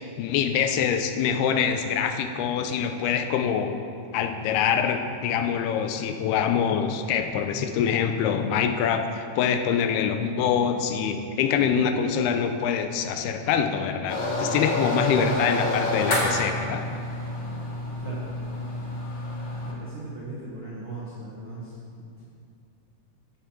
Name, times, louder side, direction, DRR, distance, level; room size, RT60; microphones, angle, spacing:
voice 1, 0.2-3.8 4.1-16.8, left 7 dB, 90° left, 6 dB, 2.6 m, -25 dB
sound 1, 14.1-19.7, left 1 dB, 50° left, 1.4 m, -28 dB
voice 2, 19.6-21.8, right 2 dB, 60° right, -8 dB, 1.3 m, -38 dB
12.5 x 7.2 x 4.4 m, 2.4 s
omnidirectional pair, 4.5 m